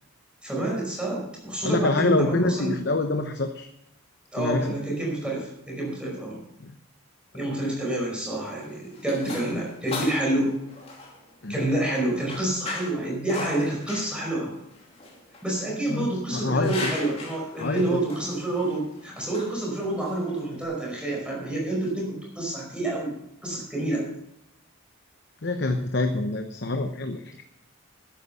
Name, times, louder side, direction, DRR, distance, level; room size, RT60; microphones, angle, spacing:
voice 1, 0.4-2.9 4.3-6.4 7.3-10.6 11.5-14.5 15.4-24.1, right 1 dB, 5° right, -2 dB, 5.1 m, -28 dB
voice 2, 1.6-3.7 4.4-4.7 6.6-6.8 11.4-11.6 15.7-16.9 17.6-18.0 25.4-27.4, left 2 dB, 50° left, 6 dB, 0.9 m, -26 dB
sound 1, 8.4-20.6, left 2 dB, 30° left, 2.8 m, -39 dB
12.5 x 10.5 x 5.5 m, 0.82 s
head